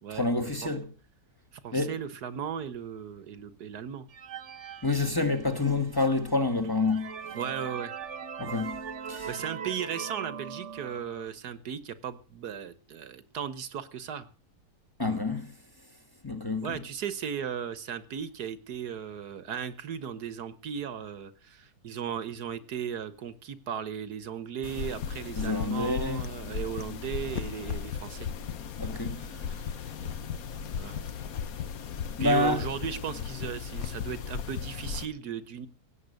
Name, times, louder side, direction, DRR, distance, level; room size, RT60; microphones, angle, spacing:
voice 1, 0.1-0.9 1.7-1.9 4.8-7.2 8.4-8.8 9.1-9.3 15.0-15.5 16.2-16.8 25.4-26.2 28.8-29.3 32.2-32.6, left 3 dB, 15° left, 1.6 m, -28 dB
voice 2, 1.5-4.1 7.3-7.9 9.3-14.3 16.6-28.3 28.9-29.6 30.0-30.1 30.6-31.1 32.2-35.7, right 8 dB, 75° right, 1.6 m, -36 dB
sound 1, 4.1-5.7 6.3-6.4 6.8-11.3, right 7 dB, 50° right, 1.2 m, -40 dB
sound 2, 24.6-35.1, left 7 dB, 65° left, 1.4 m, -36 dB
17.0 x 9.6 x 6.5 m
omnidirectional pair, 1.7 m